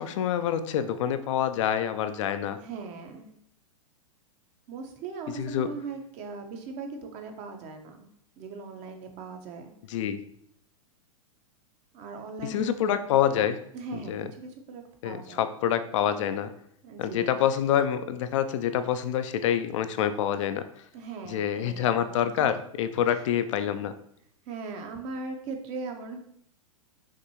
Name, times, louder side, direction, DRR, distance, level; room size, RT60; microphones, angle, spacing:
voice 1, 0.0-2.6 5.3-5.7 9.9-10.2 12.4-13.6 13.9-14.3 15.0-16.5 17.0-20.9 21.3-23.9, left 9 dB, 60° left, 10 dB, 0.4 m, -27 dB
voice 2, 2.6-3.3 4.7-8.1 8.4-9.7 11.9-12.7 13.7-15.5 16.8-17.4 20.9-22.5 23.0-23.2 24.5-26.2, right 4 dB, 40° right, 4 dB, 0.8 m, -39 dB
5.9 x 2.6 x 2.9 m, 0.68 s
hypercardioid pair, 115°, 18 cm